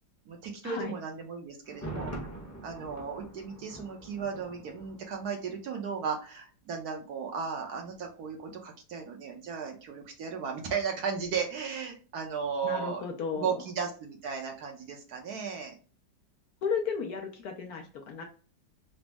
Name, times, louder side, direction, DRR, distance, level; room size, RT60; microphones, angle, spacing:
voice 1, 0.3-2.1 2.6-13.0 13.3-15.7, right 6 dB, 65° right, 2 dB, 1.1 m, -35 dB
Thunder, 1.6-5.6 5.8-5.9, right 1 dB, 15° left, 0.7 m, -43 dB
voice 2, 12.6-13.5 16.6-18.2, left 6 dB, 70° left, 3 dB, 1.0 m, -34 dB
4.0 x 2.0 x 3.3 m, 0.38 s
omnidirectional pair, 2.0 m